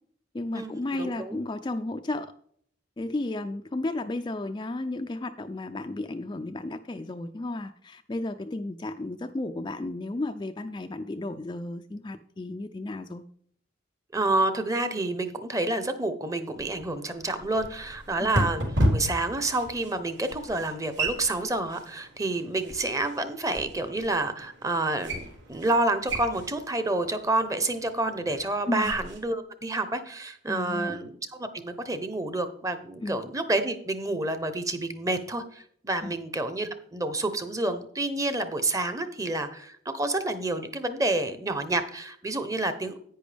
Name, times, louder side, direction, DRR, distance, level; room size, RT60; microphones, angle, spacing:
voice 1, 0.3-2.3 3.0-13.2 18.2-18.3 28.7-28.9 30.5-31.0 33.0-33.2 36.0-36.2, left 2 dB, 25° left, 7 dB, 0.3 m, -33 dB
voice 2, 1.0-1.4 14.1-18.6 18.9-43.0, right 2 dB, 15° right, 10 dB, 0.8 m, -29 dB
sound 1, 16.5-29.2, equal, 70° right, 3.3 m, -34 dB
10.0 x 9.4 x 3.4 m, 0.64 s
head